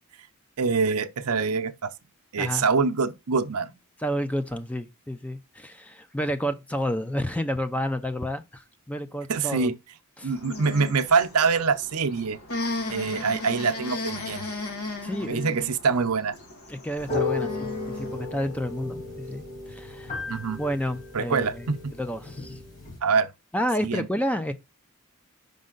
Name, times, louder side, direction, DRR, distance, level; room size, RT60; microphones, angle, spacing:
voice 1, 0.6-1.9 2.3-3.7 9.3-9.7 10.2-12.4 12.9-14.5 15.3-16.3 20.3-20.6 21.1-22.0 23.0-23.3 23.8-24.1, right 5 dB, 80° right, 0.7 m, -25 dB
voice 2, 4.0-9.7 10.2-10.3 15.0-15.4 16.7-20.2 20.5-21.7 22.0-22.6 23.5-24.5, equal, 5° left, 0.5 m, -30 dB
sound 1, 10.3-18.3, left 2 dB, 70° left, 1.6 m, -36 dB
sound 2, 17.0-23.0, left 3 dB, 35° left, 3.1 m, -34 dB
5.3 x 5.3 x 3.8 m
head